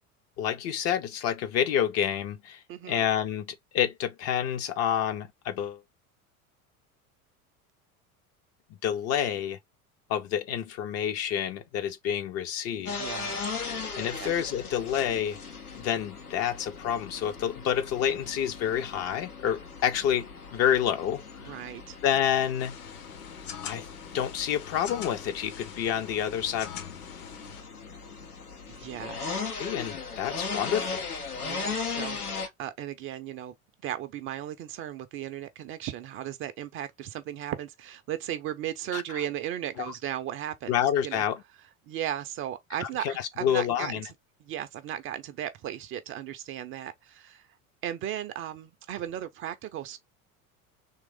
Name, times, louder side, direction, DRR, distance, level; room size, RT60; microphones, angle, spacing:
voice 1, 0.4-2.6 2.9-5.8 8.8-9.6 10.1-13.0 14.0-15.4 15.7-21.6 22.0-22.7 23.6-23.9 24.1-26.7 29.6-31.1 38.9-39.2 39.8-39.9 40.7-41.4 42.8-44.1, left 9 dB, 35° left, 0.6 m, -28 dB
voice 2, 2.7-3.1 12.8-13.6 14.1-14.3 21.4-22.0 28.7-29.5 31.4-33.5 33.8-40.7 41.0-41.2 41.9-44.0 44.4-47.5 47.8-50.0, right 11 dB, 30° right, 0.5 m, -36 dB
sound 1, 12.9-32.5, left 5 dB, 85° left, 0.8 m, -38 dB
sound 2, 22.6-27.6, left 9 dB, 60° left, 1.0 m, -43 dB
3.6 x 3.1 x 3.5 m
figure-of-eight pair, 70°, 44 cm